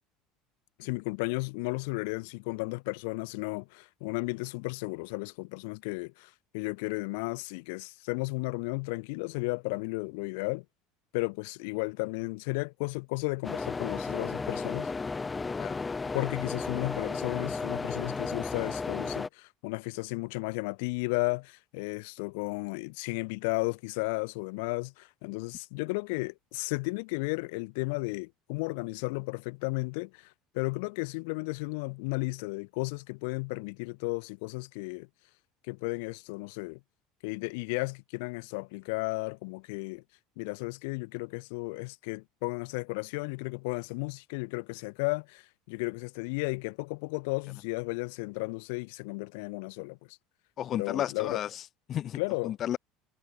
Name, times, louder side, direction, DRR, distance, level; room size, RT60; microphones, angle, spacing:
voice 1, 0.8-10.6 11.1-14.9 16.1-35.1 35.7-36.8 37.2-40.0 40.4-50.2 50.7-51.4 52.1-52.6, left 29 dB, 75° left, 4.4 m, -34 dB
sound 1, 13.4-19.3, left 4 dB, 20° left, 2.3 m, -34 dB
voice 2, 50.6-52.2 52.4-52.8, left 11 dB, 45° left, 1.7 m, -33 dB
hypercardioid pair, 80°, 0 cm